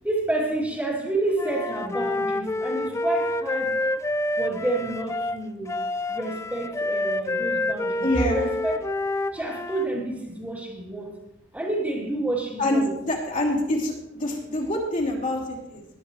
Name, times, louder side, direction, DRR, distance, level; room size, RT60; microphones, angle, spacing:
voice 1, 0.0-3.7 4.4-5.7 6.1-8.8 9.3-11.1 11.5-12.9, right 2 dB, 10° right, -2 dB, 2.7 m, -29 dB
Wind instrument woodwind instrument, 1.4-9.9, left 2 dB, 15° left, 0.3 m, -28 dB
voice 2, 8.0-8.5 12.6-13.9 14.2-15.8, left 1 dB, 40° left, -3 dB, 2.9 m, -25 dB
19.0 x 10.0 x 3.2 m, 0.92 s
head